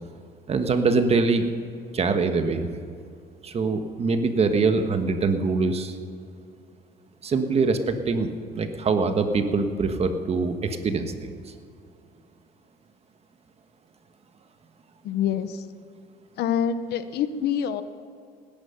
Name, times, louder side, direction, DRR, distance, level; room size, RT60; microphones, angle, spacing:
voice 1, 0.5-1.5 1.9-2.7 3.4-6.0 7.2-11.3, right 4 dB, 40° right, 7 dB, 1.4 m, -23 dB
voice 2, 15.0-15.6 16.4-17.8, left 8 dB, 75° left, 12 dB, 0.8 m, -26 dB
18.0 x 10.5 x 5.8 m, 2.4 s
cardioid pair, 110°, 17 cm